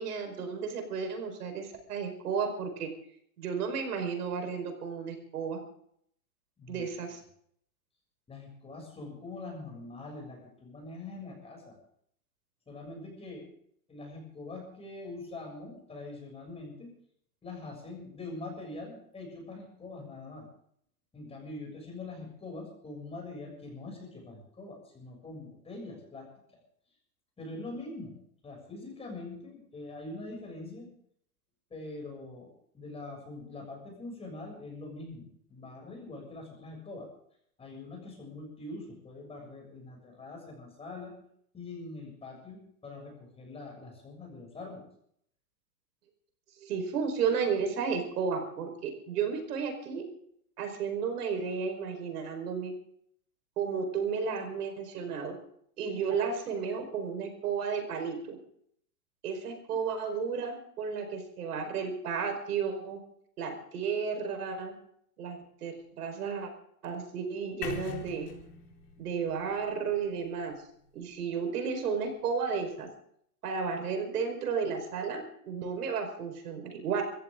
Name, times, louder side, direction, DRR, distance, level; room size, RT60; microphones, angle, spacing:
voice 1, 0.0-2.9 3.4-5.6 6.7-7.2 46.6-50.0 50.6-52.7 53.6-55.4 55.8-58.4 59.2-63.0 63.4-64.7 65.2-66.5 66.8-68.3 69.0-70.5 70.9-72.9 73.4-77.0, right 6 dB, 75° right, 5 dB, 4.9 m, -33 dB
voice 2, 8.3-11.8 12.7-13.5 13.9-16.9 17.4-20.5 21.1-26.3 26.5-26.6 27.4-28.2 28.4-30.9 31.7-32.5 32.7-37.1 37.6-41.1 41.5-44.9, left 2 dB, 15° left, 0 dB, 7.2 m, -43 dB
sound 1, 67.6-71.6, left 7 dB, 80° left, 4.1 m, -44 dB
25.0 x 15.0 x 3.8 m, 0.67 s
hypercardioid pair, 140°, 46 cm